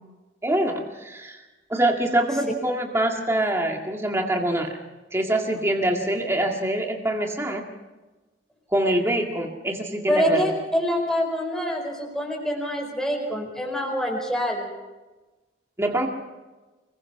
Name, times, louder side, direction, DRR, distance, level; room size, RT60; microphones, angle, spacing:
voice 1, 0.4-1.4 1.7-4.8 5.1-7.6 8.7-10.5 15.8-16.1, right 1 dB, 15° right, 1 dB, 2.0 m, -24 dB
voice 2, 10.1-14.7, equal, 5° left, 0 dB, 4.8 m, -25 dB
26.0 x 21.5 x 4.8 m, 1.2 s
head